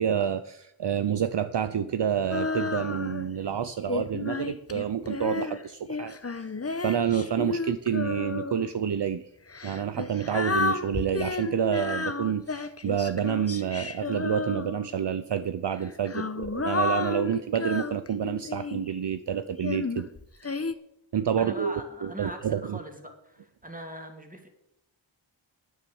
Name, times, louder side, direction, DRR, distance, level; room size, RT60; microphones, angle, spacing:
voice 1, 0.0-6.5 6.8-9.2 9.6-20.1 21.1-21.7 22.0-22.8, right 8 dB, 60° right, 12 dB, 0.7 m, -28 dB
Female singing, 2.3-3.4 3.9-8.7 9.5-15.0 15.8-18.9 19.6-20.7, left 3 dB, 30° left, 0.9 m, -32 dB
voice 2, 21.4-24.5, right 1 dB, 15° right, 4 dB, 2.8 m, -41 dB
10.0 x 9.2 x 7.1 m, 0.79 s
cardioid pair, 40°, 49 cm